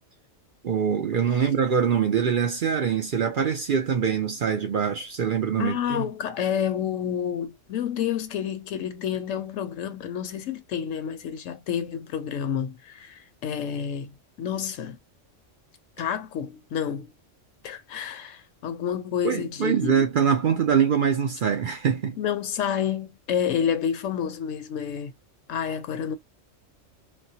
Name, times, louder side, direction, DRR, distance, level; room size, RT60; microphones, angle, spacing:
voice 1, 0.6-6.1 19.2-22.2, right 7 dB, 55° right, 0.6 m, -24 dB
voice 2, 5.6-15.0 16.0-17.1 17.6-20.0 22.2-25.1 25.5-26.2, left 8 dB, 85° left, 1.0 m, -29 dB
4.2 x 2.0 x 2.7 m
omnidirectional pair, 1.3 m